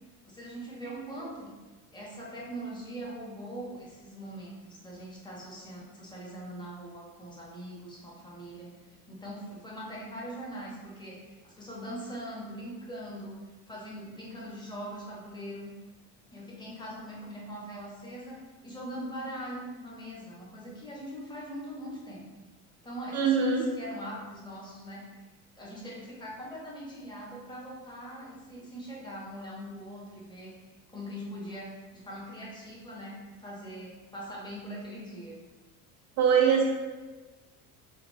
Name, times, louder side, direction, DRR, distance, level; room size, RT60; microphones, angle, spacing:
voice 1, 0.2-1.5 1.9-15.7 16.3-22.3 22.8-25.2 25.5-30.6 30.9-35.4, equal, 10° left, -4 dB, 1.1 m, -42 dB
voice 2, 23.1-23.6 36.2-36.6, right 6 dB, 50° right, 0 dB, 0.5 m, -22 dB
5.2 x 2.4 x 3.2 m, 1.2 s
supercardioid pair, 110°, 35 cm